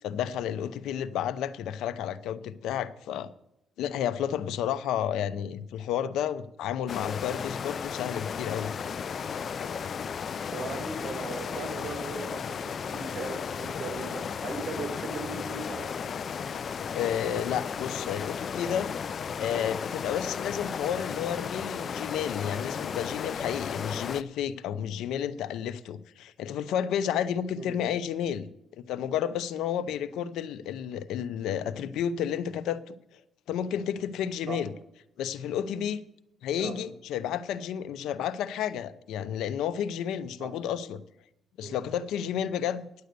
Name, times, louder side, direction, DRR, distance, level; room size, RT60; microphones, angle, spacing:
voice 1, 0.0-3.3 3.8-8.7 16.9-18.9 19.4-28.5 28.8-32.9 33.5-34.7 35.2-36.0 36.4-41.0 41.6-42.8, left 9 dB, 85° left, 14 dB, 0.7 m, -31 dB
sound 1, 6.9-24.2, left 6 dB, 50° left, 0.5 m, -34 dB
voice 2, 10.5-15.9 27.6-27.8 34.5-34.6 36.6-36.8 40.4-40.5 41.6-41.8, right 4 dB, 45° right, 4 dB, 2.8 m, -38 dB
10.5 x 8.1 x 6.7 m, 0.78 s
cardioid pair, 90°, 0 cm